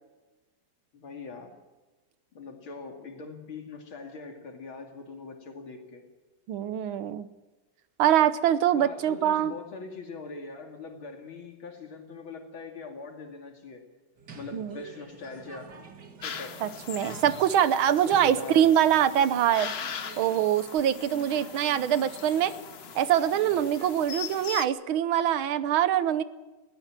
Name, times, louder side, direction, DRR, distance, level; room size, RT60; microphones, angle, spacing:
voice 1, 0.9-1.5 2.3-6.0 8.7-13.8 14.3-15.7 16.2-16.6 18.1-18.7, left 4 dB, 85° left, 3 dB, 3.4 m, -42 dB
voice 2, 6.5-7.3 8.0-9.5 14.5-14.8 16.6-19.7 20.2-22.5 23.0-26.2, right 10 dB, 85° right, 14 dB, 1.7 m, -24 dB
sound 1, 14.2-24.1, right 4 dB, 55° right, 2.6 m, -48 dB
sound 2, 16.2-24.7, left 7 dB, 50° left, 0.7 m, -40 dB
21.5 x 17.0 x 7.5 m, 1.2 s
omnidirectional pair, 2.2 m